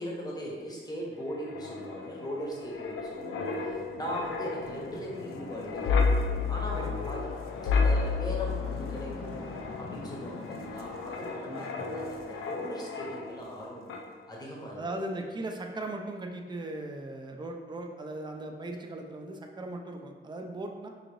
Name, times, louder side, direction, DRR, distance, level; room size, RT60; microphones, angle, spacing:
voice 1, 0.0-6.1 6.5-7.3 7.6-9.5 9.8-14.0 14.3-15.0, equal, 20° left, -3 dB, 0.7 m, -39 dB
Wind, 1.2-13.6 13.9-14.1, left 4 dB, 80° left, 0.4 m, -32 dB
voice 2, 6.7-7.1 11.4-12.0 14.8-20.9, right 2 dB, 20° right, 3 dB, 0.3 m, -38 dB
3.8 x 2.6 x 3.0 m, 1.5 s
wide cardioid pair, 125°, 21 cm